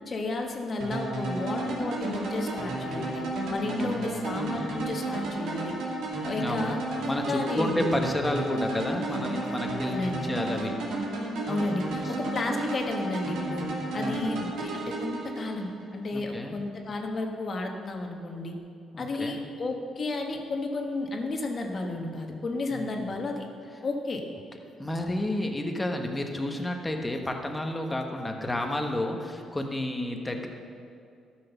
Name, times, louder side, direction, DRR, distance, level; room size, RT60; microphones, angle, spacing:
voice 1, 0.1-3.2 3.5-5.7 6.2-6.8 7.3-7.8 9.8-10.3 11.5-13.6 13.9-18.5 19.0-23.5 23.8-24.2, left 2 dB, 45° left, 2 dB, 1.4 m, -32 dB
sound 1, 0.8-15.9, right 2 dB, 80° right, 2.4 m, -33 dB
voice 2, 3.6-4.3 6.4-6.8 7.0-10.7 12.0-12.1 13.9-14.4 16.1-16.6 18.9-19.4 22.7-23.1 24.8-30.5, left 1 dB, 15° left, 3 dB, 1.2 m, -31 dB
13.0 x 6.3 x 5.9 m, 2.4 s
cardioid pair, 90°, 0 cm